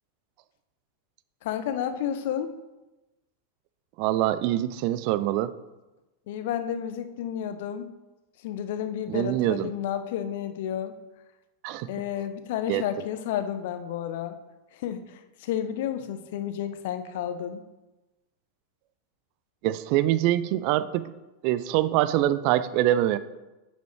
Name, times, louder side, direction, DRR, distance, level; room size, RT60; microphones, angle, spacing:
voice 1, 1.4-2.5 6.3-7.9 8.4-11.0 11.9-14.4 14.7-17.6, left 9 dB, 55° left, 10 dB, 0.7 m, -31 dB
voice 2, 4.0-5.5 9.1-9.7 11.6-11.9 12.7-12.8 19.6-21.1 21.4-23.2, right 13 dB, 45° right, 15 dB, 0.4 m, -24 dB
9.1 x 7.2 x 3.2 m, 1.0 s
figure-of-eight pair, 90°, 0 cm